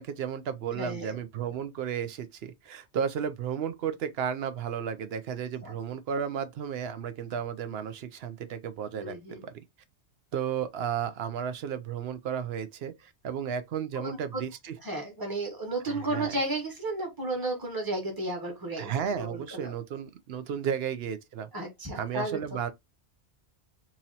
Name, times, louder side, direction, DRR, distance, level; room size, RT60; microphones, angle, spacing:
voice 1, 0.0-9.6 10.3-14.8 15.9-16.3 18.8-21.5 21.9-22.7, right 8 dB, 65° right, 0.8 m, -33 dB
voice 2, 0.7-1.2 5.6-5.7 8.9-9.5 13.9-14.4 14.8-19.7 21.5-22.6, right 2 dB, 20° right, 1.3 m, -33 dB
3.0 x 2.7 x 3.9 m
omnidirectional pair, 1.2 m